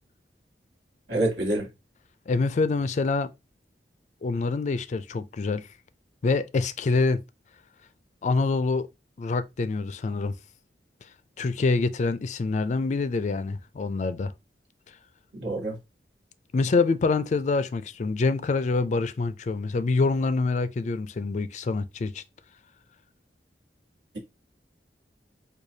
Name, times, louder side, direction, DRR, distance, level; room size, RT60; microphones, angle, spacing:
voice 1, 1.1-1.7 15.4-15.7, right 2 dB, 75° right, 1.4 m, -26 dB
voice 2, 2.3-3.3 4.2-5.7 6.2-7.2 8.2-8.9 9.2-10.3 11.4-14.3 16.5-22.2, left 3 dB, 40° left, 0.3 m, -26 dB
4.8 x 2.3 x 2.7 m
head